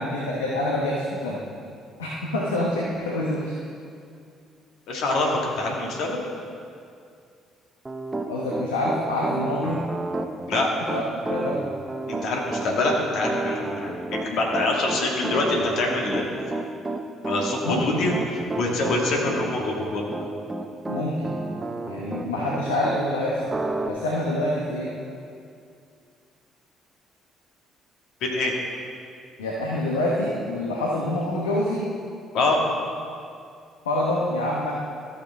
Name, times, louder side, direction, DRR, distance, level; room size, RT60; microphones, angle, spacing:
voice 1, 0.0-1.4 2.0-3.5 8.3-9.8 10.9-11.0 11.3-11.6 17.6-18.0 20.9-21.3 21.9-23.5 23.9-24.9 29.4-31.9 33.8-34.7, left 1 dB, 90° left, -3 dB, 1.0 m, -26 dB
voice 2, 4.9-6.2 10.5-10.7 12.1-16.2 17.2-20.0 28.2-28.5 32.3-32.6, left 2 dB, 65° left, -1 dB, 1.8 m, -25 dB
Piano, 7.8-23.0 23.5-23.9, right 2 dB, 20° right, 0.7 m, -31 dB
14.0 x 6.8 x 3.5 m, 2.4 s
hypercardioid pair, 50°, 0 cm